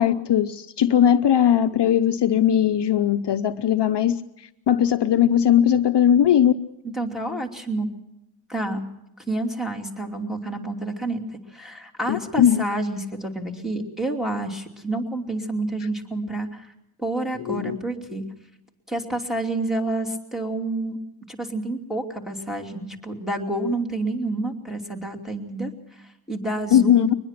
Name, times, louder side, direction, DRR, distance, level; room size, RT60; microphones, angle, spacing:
voice 1, 0.0-6.5 12.1-12.6 17.5-17.8 26.7-27.1, left 9 dB, 55° left, 9 dB, 0.7 m, -19 dB
voice 2, 6.9-7.9 8.5-8.8 9.3-11.2 11.5-16.7 17.0-18.2 18.9-21.0 21.3-27.1, right 2 dB, ahead, -1 dB, 2.8 m, -29 dB
23.0 x 20.5 x 5.9 m, 0.89 s
wide cardioid pair, 115°, 49 cm